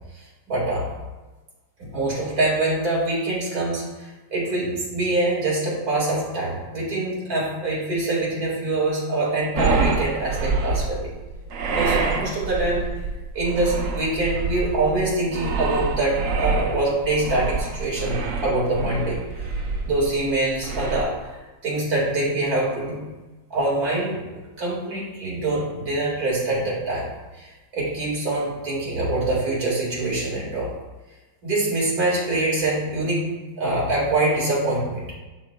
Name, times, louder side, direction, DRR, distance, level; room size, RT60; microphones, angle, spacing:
voice 1, 0.5-0.9 1.8-11.1 11.7-12.8 13.3-19.2 19.8-21.4 21.6-23.0 23.5-24.2 24.6-27.1 27.4-30.7 31.4-33.2 33.6-35.0, right 2 dB, 55° right, -5 dB, 2.3 m, -24 dB
sound 1, 9.6-21.0, right 3 dB, 70° right, 0.7 m, -26 dB
11.0 x 3.9 x 2.2 m, 1.2 s
omnidirectional pair, 2.0 m